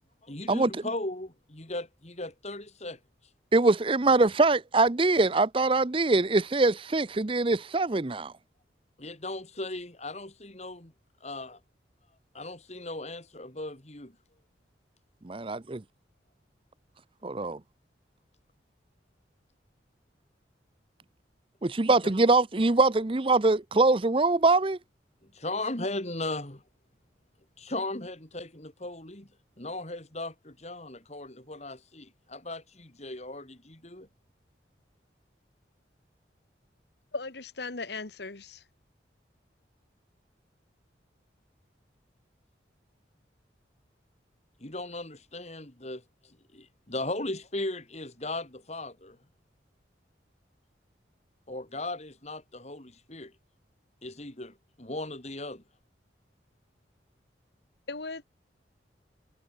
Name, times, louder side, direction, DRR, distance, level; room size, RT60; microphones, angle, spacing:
voice 1, 0.2-3.0 9.0-10.9 11.2-11.6 12.3-14.1 22.0-22.1 25.2-26.6 27.6-29.3 29.6-34.1 44.6-49.2 51.5-53.3 54.0-55.6, left 2 dB, 35° left, 3.2 m, -37 dB
voice 2, 3.5-8.3 15.2-15.8 17.2-17.6 21.6-24.8, right 3 dB, 30° right, 0.7 m, -23 dB
voice 3, 37.1-38.6 57.9-58.2, left 3 dB, 65° left, 1.5 m, -37 dB
head